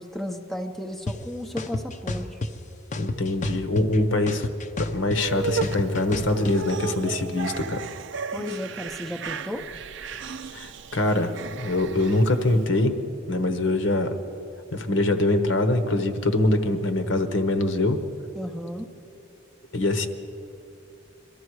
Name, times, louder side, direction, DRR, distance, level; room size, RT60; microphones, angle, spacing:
voice 1, 0.0-2.4 8.3-9.7 18.4-18.9, left 1 dB, ahead, 3 dB, 0.7 m, -34 dB
sound 1, 1.1-1.2 1.6-2.5 2.9-4.0 4.3-6.6, left 2 dB, 40° left, 0.7 m, -30 dB
voice 2, 3.0-4.5 4.8-7.8 10.5-11.3 11.6-12.9 13.3-14.1 14.7-18.0 19.7-20.1, left 2 dB, 65° left, 8 dB, 1.1 m, -23 dB
sound 2, 5.2-12.6, right 5 dB, 65° right, 0.5 m, -34 dB
23.0 x 13.0 x 4.8 m, 2.6 s
head